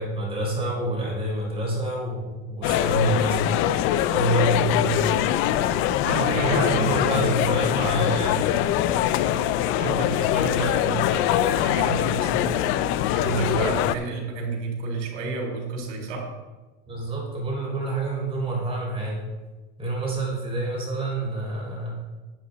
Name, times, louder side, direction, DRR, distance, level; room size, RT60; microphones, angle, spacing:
voice 1, 0.0-3.4 4.1-5.1 6.3-8.5 16.9-19.2 19.8-22.0, right 2 dB, 15° right, -3 dB, 3.8 m, -27 dB
sound 1, 2.6-14.0, left 11 dB, 35° left, 0.4 m, -23 dB
voice 2, 6.0-7.1 9.7-12.5 13.1-16.3, right 3 dB, 75° right, 0 dB, 3.9 m, -30 dB
10.5 x 9.3 x 4.0 m, 1.2 s
supercardioid pair, 145°, 36 cm